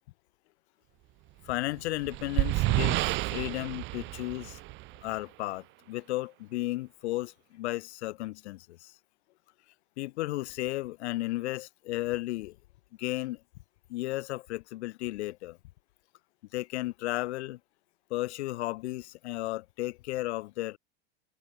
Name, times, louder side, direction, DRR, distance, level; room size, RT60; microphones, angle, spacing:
voice 1, 1.4-4.6 5.0-8.9 10.0-12.6 13.0-13.4 13.9-15.6 16.5-17.6 18.1-20.8, left 18 dB, 75° left, 0.8 m, -34 dB
sound 1, 1.5-5.2, right 20 dB, 35° right, 0.6 m, -30 dB
supercardioid pair, 130°, 33 cm